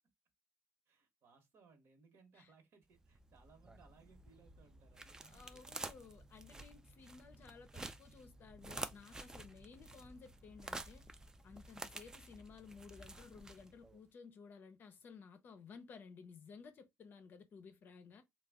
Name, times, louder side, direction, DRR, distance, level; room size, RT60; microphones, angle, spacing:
voice 1, 0.9-5.9 12.2-12.4, right 5 dB, 60° right, 1.2 m, -66 dB
sound 1, 2.9-14.0, right 2 dB, 15° right, 0.4 m, -51 dB
voice 2, 5.2-11.0 11.4-18.2, left 5 dB, 45° left, 0.5 m, -56 dB
3.3 x 2.2 x 3.5 m
cardioid pair, 135°, 5 cm